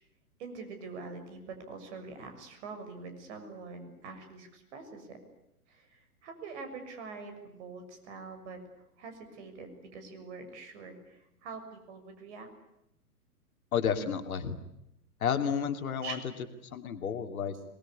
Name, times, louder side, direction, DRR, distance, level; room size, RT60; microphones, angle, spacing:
voice 1, 0.4-5.2 5.7-8.6 9.0-12.5 16.0-16.2, right 4 dB, 45° right, 7 dB, 6.8 m, -44 dB
voice 2, 13.7-14.6 15.2-16.2 16.6-17.6, left 7 dB, 60° left, 6 dB, 2.8 m, -31 dB
25.5 x 20.5 x 10.0 m, 0.83 s
figure-of-eight pair, 115°, 47 cm